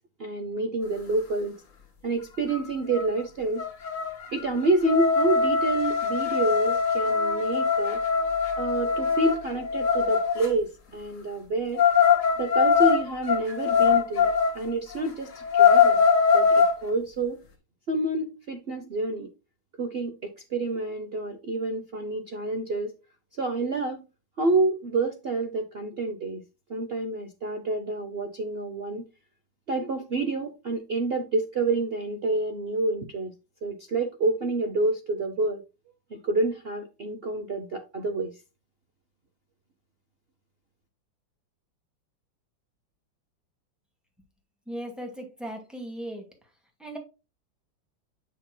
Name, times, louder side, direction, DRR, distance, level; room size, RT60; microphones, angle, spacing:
voice 1, 0.2-1.5 2.0-3.6 4.3-8.0 8.6-11.8 12.4-14.3 14.5-16.1 16.3-17.4 17.9-19.3 19.8-22.9 23.3-24.0 24.4-26.4 26.7-29.0 29.7-33.3 33.6-35.6 36.1-38.3, right 2 dB, 65° right, 0.6 m, -28 dB
sound 1, 2.5-2.6 2.9-3.2 3.6-10.5 11.8-14.6 15.0-15.1 15.4-16.8, left 6 dB, 45° left, 1.7 m, -22 dB
voice 2, 44.7-46.3 46.8-47.0, right 1 dB, ahead, 1.9 m, -37 dB
7.4 x 6.6 x 2.2 m
omnidirectional pair, 2.1 m